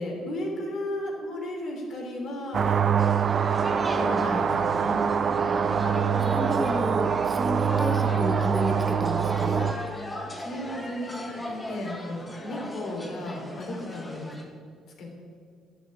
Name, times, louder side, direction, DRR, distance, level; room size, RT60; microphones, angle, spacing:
voice 1, 0.0-2.8 3.9-5.0 10.1-14.3 15.0-15.1, left 1 dB, 60° left, 0 dB, 3.3 m, -34 dB
sound 1, 2.5-9.7, right 7 dB, 45° right, 0.4 m, -24 dB
sound 2, 3.0-14.4, left 1 dB, 15° left, 2.0 m, -37 dB
voice 2, 5.5-5.8 6.2-9.7, right 1 dB, 10° right, 4 dB, 1.1 m, -32 dB
11.0 x 7.1 x 8.6 m, 2.1 s
cardioid pair, 100°, 0 cm